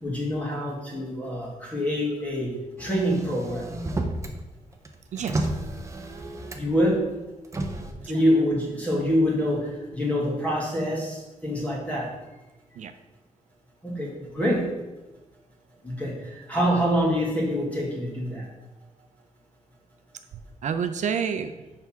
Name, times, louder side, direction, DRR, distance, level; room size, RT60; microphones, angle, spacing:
voice 1, 0.0-2.5 2.8-3.7 6.6-7.0 8.0-12.1 13.8-14.7 15.8-18.4, equal, 10° left, -3 dB, 1.7 m, -26 dB
Motor vehicle (road), 2.8-4.4 4.7-6.8 7.4-7.9, right 2 dB, 20° right, 0.6 m, -31 dB
voice 2, 5.1-5.5 8.0-8.2 12.8-12.9 18.4-18.5 20.3-21.5, right 7 dB, 65° right, 9 dB, 0.4 m, -30 dB
6.6 x 3.5 x 5.8 m, 1.1 s
wide cardioid pair, 170°, 13 cm